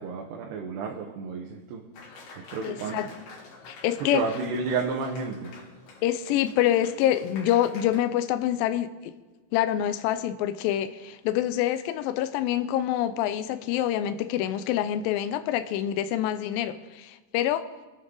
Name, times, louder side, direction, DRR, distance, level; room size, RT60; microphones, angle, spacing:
voice 1, 0.0-1.8 2.4-3.0 4.0-5.5, right 4 dB, 75° right, 3.1 m, -31 dB
Applause, 1.9-8.0, left 4 dB, 65° left, 3.7 m, -47 dB
voice 2, 2.6-3.1 3.7-4.2 6.0-9.1 9.5-17.7, left 12 dB, 90° left, 2.0 m, -26 dB
25.0 x 9.5 x 3.8 m
omnidirectional pair, 4.9 m